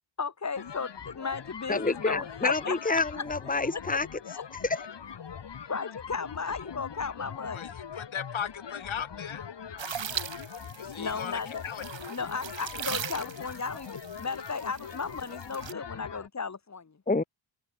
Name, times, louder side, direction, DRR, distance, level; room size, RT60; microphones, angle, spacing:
voice 1, 0.2-3.3 3.7-3.8 4.4-4.5 5.7-7.8 10.9-11.6 12.1-17.0, left 5 dB, 35° left, 4.2 m, -35 dB
sound 1, 0.5-16.3, left 7 dB, 65° left, 4.4 m, -42 dB
voice 2, 1.7-4.1 4.6-4.8 17.1-17.2, left 3 dB, 15° left, 2.2 m, -28 dB
voice 3, 8.0-9.5 10.8-11.8, left 8 dB, 80° left, 6.9 m, -37 dB
sound 2, 9.8-15.7, right 8 dB, 70° right, 2.5 m, -40 dB
wide cardioid pair, 145°, 47 cm